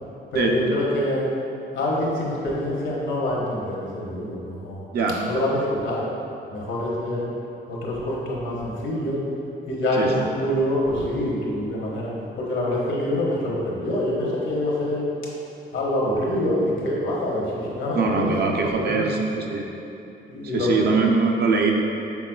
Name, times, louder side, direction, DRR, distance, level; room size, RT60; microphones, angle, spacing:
voice 1, 0.3-1.3 1.7-4.8 5.2-6.1 6.5-7.3 7.7-9.2 9.7-12.1 12.4-15.0 15.7-19.1 20.3-20.9, left 1 dB, 75° left, -4 dB, 1.0 m, -25 dB
voice 2, 17.9-19.7 20.5-21.7, right 4 dB, 55° right, 0 dB, 0.5 m, -22 dB
6.0 x 3.6 x 2.3 m, 2.8 s
cardioid pair, 90°, 20 cm